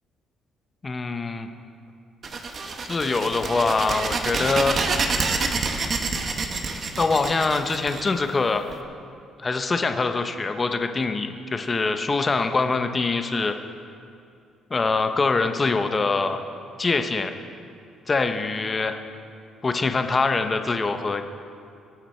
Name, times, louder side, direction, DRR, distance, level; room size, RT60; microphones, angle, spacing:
voice 1, 0.8-1.5 2.9-4.8 7.0-8.6 9.4-13.6 14.7-16.4 16.8-17.3 18.1-19.0 19.6-21.2, left 3 dB, 25° left, 7 dB, 0.8 m, -24 dB
sound 1, 2.2-8.7, right 4 dB, 40° right, 1.0 m, -27 dB
22.0 x 8.8 x 4.4 m, 2.4 s
cardioid pair, 140°, 0 cm